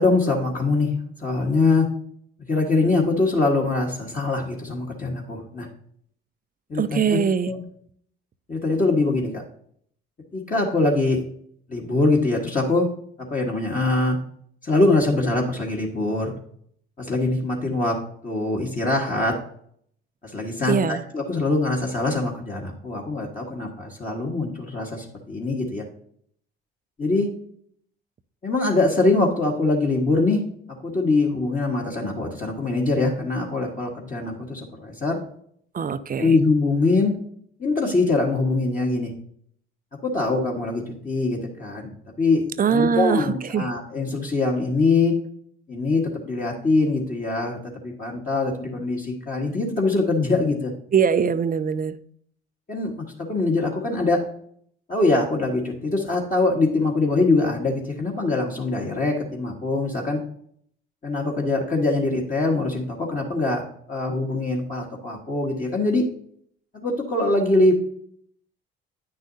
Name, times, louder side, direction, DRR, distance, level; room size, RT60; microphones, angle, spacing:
voice 1, 0.0-1.9 2.5-5.7 6.7-7.2 7.4-7.6 8.5-9.4 10.3-11.2 11.7-12.9 13.3-14.2 14.6-16.3 17.0-18.0 18.2-19.3 20.2-25.8 27.0-27.3 28.4-30.4 30.8-35.2 36.2-37.1 37.6-39.1 40.0-41.9 42.2-45.1 45.7-50.7 52.7-54.2 54.9-60.2 61.0-66.0 66.7-67.7, left 3 dB, 25° left, -2 dB, 1.6 m, -23 dB
voice 2, 6.8-7.5 20.7-21.0 35.7-36.4 42.6-43.7 50.9-52.0, right 7 dB, 30° right, 13 dB, 0.5 m, -22 dB
9.5 x 6.3 x 2.7 m, 0.64 s
hypercardioid pair, 60°, 30 cm